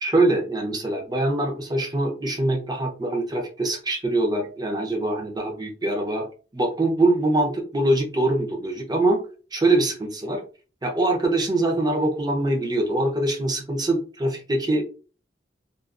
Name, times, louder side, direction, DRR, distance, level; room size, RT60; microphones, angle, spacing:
voice 1, 0.0-6.3 6.5-9.2 9.5-10.4 10.8-14.8, right 2 dB, 25° right, 1 dB, 0.6 m, -23 dB
2.4 x 2.3 x 2.4 m, 0.37 s
head